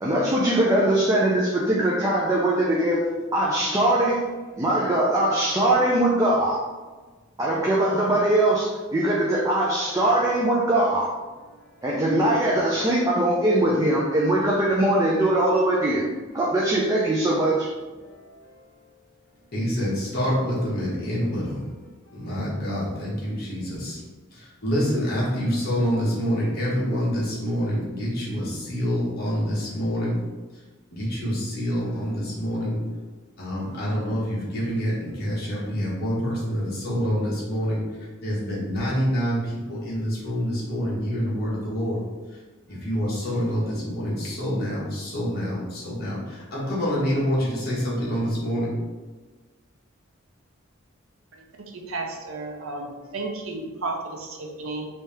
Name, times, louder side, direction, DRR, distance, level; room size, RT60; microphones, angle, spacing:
voice 1, 0.0-3.0 3.3-4.2 4.6-6.6 7.4-11.1 11.8-16.0 16.3-17.7, right 1 dB, 15° right, -5 dB, 0.4 m, -21 dB
voice 2, 19.5-21.6 22.1-24.0 24.6-30.2 30.9-32.8 33.4-37.8 38.2-39.4 39.7-42.0 42.7-46.2 46.5-48.7 52.3-52.5, equal, 50° left, -6 dB, 1.3 m, -26 dB
voice 3, 51.7-54.9, right 3 dB, 80° right, 1 dB, 0.6 m, -33 dB
3.3 x 2.7 x 3.4 m, 1.3 s
head